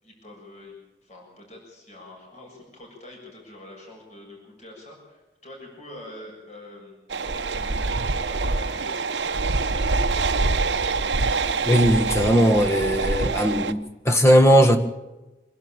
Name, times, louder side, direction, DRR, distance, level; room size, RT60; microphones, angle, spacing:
voice 1, 0.0-0.7 1.0-10.0, left 1 dB, 40° left, -1 dB, 7.1 m, -44 dB
sound 1, 7.1-13.7, right 3 dB, 80° right, 1.0 m, -25 dB
voice 2, 11.6-14.8, equal, 15° left, 7 dB, 1.5 m, -18 dB
26.0 x 12.0 x 8.9 m, 1.1 s
head